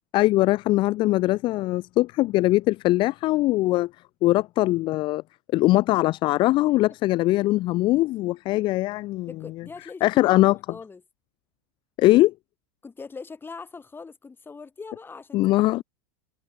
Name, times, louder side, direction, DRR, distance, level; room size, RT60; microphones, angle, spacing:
voice 1, 0.1-3.9 4.2-5.2 5.5-9.3 10.0-10.6 12.0-12.3 15.3-15.8, left 18 dB, 40° left, 0.4 m, -21 dB
voice 2, 9.3-11.0 12.8-15.8, left 4 dB, 15° left, 7.6 m, -42 dB
hypercardioid pair, 95°, 12 cm